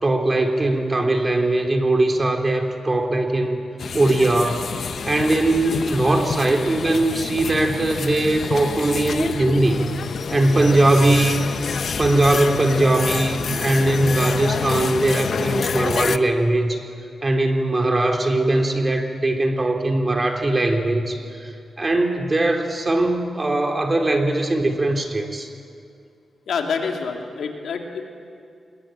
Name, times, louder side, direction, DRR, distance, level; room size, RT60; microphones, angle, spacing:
voice 1, 0.0-3.6 3.9-4.7 5.0-9.9 10.3-11.5 12.0-16.8 17.2-25.5, right 2 dB, 30° right, 3 dB, 3.3 m, -20 dB
sound 1, 3.8-16.2, left 6 dB, 65° left, 0.8 m, -28 dB
voice 2, 26.5-28.0, left 5 dB, 85° left, 2 dB, 3.1 m, -27 dB
26.5 x 22.0 x 9.1 m, 2.4 s
cardioid pair, 80°, 0 cm